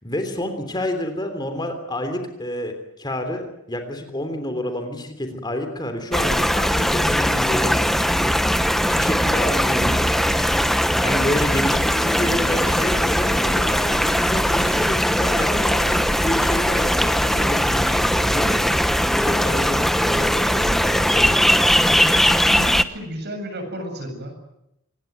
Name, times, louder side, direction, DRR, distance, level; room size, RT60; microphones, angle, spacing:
voice 1, 0.0-8.3 8.8-10.5 11.0-18.8 19.2-21.8, left 1 dB, 20° left, 7 dB, 3.3 m, -29 dB
sound 1, 6.1-22.8, equal, ahead, 1.0 m, -20 dB
voice 2, 22.5-24.4, equal, 50° right, 6 dB, 7.5 m, -32 dB
25.5 x 20.5 x 9.4 m, 0.83 s
head